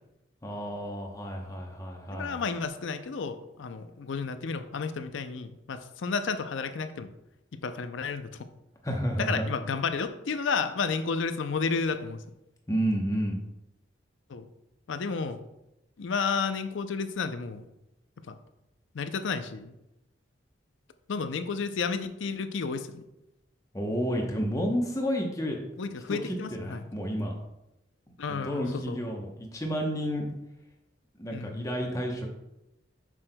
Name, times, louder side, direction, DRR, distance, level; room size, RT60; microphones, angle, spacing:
voice 1, 0.4-2.4 8.8-9.4 12.7-13.4 23.7-25.6 26.1-27.3 28.3-30.3 31.2-32.3, equal, 15° left, 1 dB, 0.8 m, -31 dB
voice 2, 2.2-7.1 7.5-8.5 9.2-12.2 14.3-14.5 14.9-15.4 16.0-17.7 18.3-18.4 18.9-19.7 21.1-23.0 25.8-26.8 28.2-29.0 31.3-31.6, left 5 dB, 75° left, 10 dB, 0.5 m, -32 dB
7.5 x 6.2 x 2.2 m, 0.91 s
head